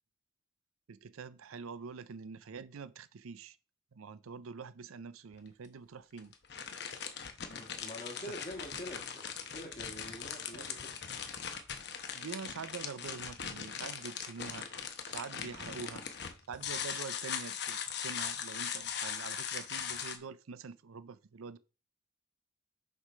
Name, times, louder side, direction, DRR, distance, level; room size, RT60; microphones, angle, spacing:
voice 1, 0.9-3.6 3.9-6.3 8.3-8.4 8.6-8.7 10.5-10.7 12.1-14.7 15.0-16.1 16.5-21.6, right 5 dB, 90° right, 0.5 m, -45 dB
sound 1, 5.3-5.4 6.2-20.2, left 7 dB, 55° left, 0.9 m, -40 dB
voice 2, 7.5-9.2 9.5-10.9 15.3-15.5, left 1 dB, 35° left, 1.5 m, -46 dB
6.6 x 5.0 x 5.5 m
head